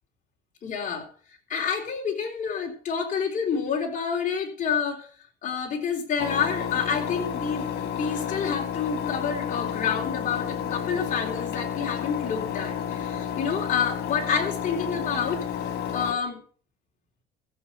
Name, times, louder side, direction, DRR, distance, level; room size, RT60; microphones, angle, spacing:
voice 1, 0.6-5.1 5.4-15.4 15.9-16.4, left 6 dB, 50° left, 1 dB, 3.8 m, -28 dB
Engine, 6.2-16.1, left 8 dB, 75° left, 2.8 m, -31 dB
15.0 x 7.8 x 5.6 m, 0.43 s
cardioid pair, 110°, 17 cm